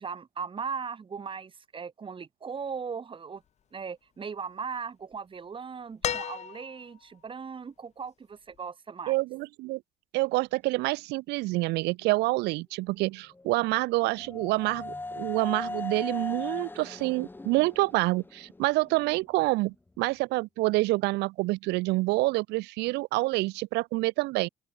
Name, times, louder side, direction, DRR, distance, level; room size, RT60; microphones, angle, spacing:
voice 1, 0.0-3.4 3.7-9.2, right 6 dB, 30° right, 1.9 m, -38 dB
sound 1, 6.0-7.0 8.6-8.7, left 9 dB, 40° left, 0.8 m, -33 dB
voice 2, 9.1-9.8 10.1-24.5, right 21 dB, 80° right, 0.4 m, -27 dB
sound 2, 13.3-19.2, left 2 dB, 10° left, 1.3 m, -39 dB
open air
cardioid pair, 110°, 17 cm